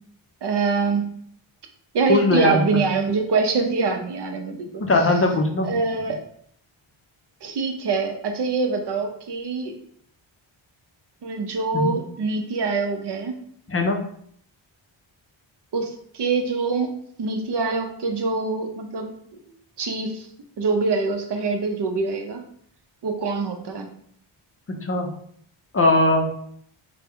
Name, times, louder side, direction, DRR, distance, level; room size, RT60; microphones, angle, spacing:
voice 1, 0.4-1.1 1.9-4.8 5.6-6.2 7.4-9.7 11.2-13.3 15.7-19.1 19.8-20.3 20.6-22.5 23.0-23.9, right 4 dB, 55° right, 5 dB, 0.7 m, -24 dB
voice 2, 2.1-2.6 4.8-5.7 11.7-12.0 13.7-14.0 24.7-25.1 25.7-26.3, left 2 dB, 30° left, 3 dB, 0.5 m, -20 dB
3.4 x 2.1 x 3.3 m, 0.65 s
cardioid pair, 75°, 48 cm